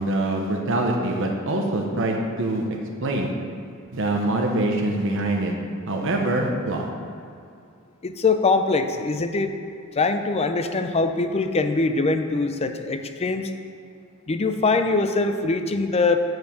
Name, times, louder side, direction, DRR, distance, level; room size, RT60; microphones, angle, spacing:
voice 1, 0.0-2.7 3.0-3.3 3.9-5.5 5.9-6.9, right 1 dB, 65° right, 1 dB, 0.9 m, -24 dB
voice 2, 8.0-9.6 9.9-13.5 14.3-16.2, left 3 dB, 30° left, 8 dB, 0.5 m, -22 dB
7.8 x 4.7 x 6.9 m, 2.3 s
head